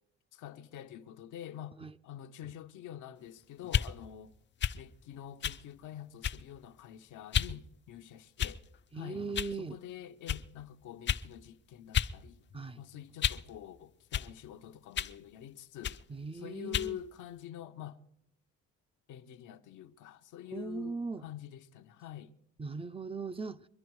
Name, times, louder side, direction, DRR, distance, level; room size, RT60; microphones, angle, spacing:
voice 1, 0.3-4.3 4.7-8.6 8.9-9.2 9.6-12.4 12.8-16.0 16.3-18.0 19.1-22.3, left 11 dB, 85° left, 0.8 m, -46 dB
sound 1, 3.6-3.9 4.6-4.8 5.4-5.6 6.2-6.5 7.3-7.5 8.4-8.8 9.3-9.5 10.3-10.4 11.1-11.3 11.9-12.1 12.5-13.5 14.1-14.3 14.9-15.2 15.8-16.0 16.7-16.9, left 9 dB, 40° left, 0.4 m, -32 dB
voice 2, 8.9-9.8 12.5-12.8 16.1-17.0 20.5-21.2 22.6-23.7, right 4 dB, 20° right, 0.4 m, -39 dB
23.5 x 10.5 x 4.7 m
cardioid pair, 90°, 30 cm